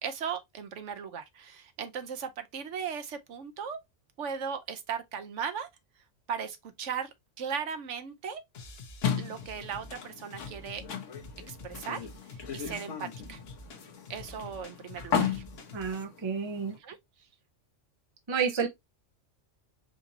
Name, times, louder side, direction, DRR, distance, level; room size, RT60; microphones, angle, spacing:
voice 1, 0.0-3.8 4.2-5.7 6.3-8.4 9.2-10.8 11.5-13.4 14.1-15.4 16.8-17.0, right 7 dB, 75° right, 1.1 m, -37 dB
sound 1, 8.5-16.0, left 2 dB, 55° left, 1.1 m, -48 dB
sound 2, 9.0-16.8, left 7 dB, 75° left, 1.2 m, -36 dB
voice 2, 15.7-16.8 18.3-18.7, right 6 dB, 25° right, 0.7 m, -30 dB
5.0 x 2.8 x 2.7 m
omnidirectional pair, 1.3 m